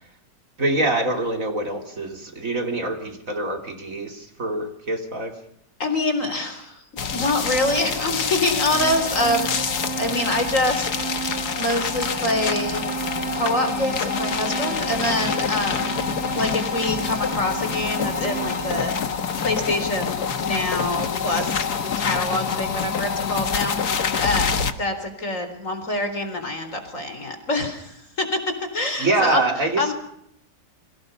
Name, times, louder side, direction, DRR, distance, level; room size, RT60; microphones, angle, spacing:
voice 1, 0.6-5.4 29.0-29.9, right 2 dB, 50° right, 4 dB, 3.4 m, -25 dB
voice 2, 5.8-6.8 7.1-11.3 11.6-12.8 13.3-16.0 16.3-21.7 22.0-29.5 29.8-29.9, left 2 dB, 45° left, 7 dB, 4.3 m, -26 dB
sound 1, 7.0-24.7, left 6 dB, 65° left, 2.0 m, -26 dB
sound 2, 8.7-19.0, right 6 dB, 5° right, 3.4 m, -33 dB
29.5 x 23.5 x 5.5 m, 0.75 s
omnidirectional pair, 1.8 m